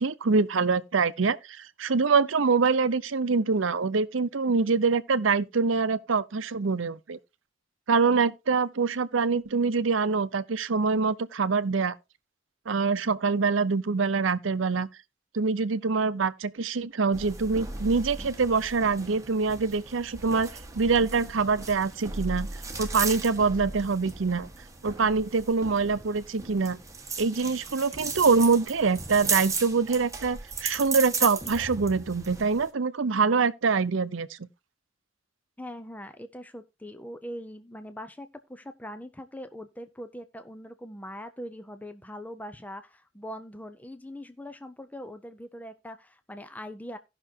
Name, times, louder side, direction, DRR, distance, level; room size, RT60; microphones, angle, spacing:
voice 1, 0.0-7.2 7.9-11.9 12.7-14.9 15.3-20.5 20.7-22.5 22.8-24.5 24.8-26.8 27.2-34.3, right 4 dB, 90° right, 0.7 m, -25 dB
sound 1, 17.1-32.7, right 4 dB, 15° right, 1.4 m, -36 dB
voice 2, 35.6-47.0, equal, 10° left, 0.6 m, -41 dB
16.5 x 6.0 x 2.8 m
head